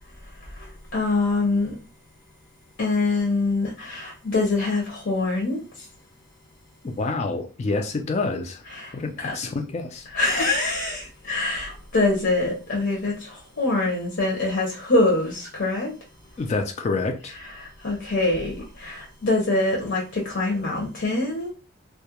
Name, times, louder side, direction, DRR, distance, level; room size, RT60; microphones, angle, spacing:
voice 1, 0.6-1.8 2.8-5.6 8.7-8.9 9.2-9.3 10.1-15.9 17.6-21.5, left 2 dB, 55° left, 0.7 m, -24 dB
voice 2, 7.0-8.6 8.9-10.1 16.4-17.3, left 3 dB, 30° left, 0.3 m, -27 dB
2.3 x 2.1 x 2.8 m
head